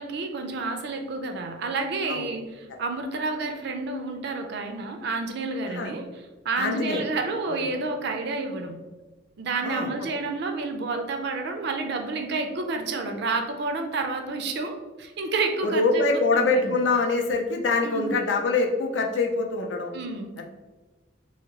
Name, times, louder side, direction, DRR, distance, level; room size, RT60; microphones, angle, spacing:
voice 1, 0.0-6.1 6.4-8.7 9.4-16.8 17.8-18.2 19.9-20.3, right 3 dB, 60° right, 5 dB, 0.4 m, -30 dB
voice 2, 6.5-7.0 7.5-7.7 9.6-9.9 15.6-19.9 20.4-20.5, left 3 dB, 70° left, 3 dB, 0.4 m, -24 dB
2.8 x 2.6 x 2.9 m, 1.2 s
head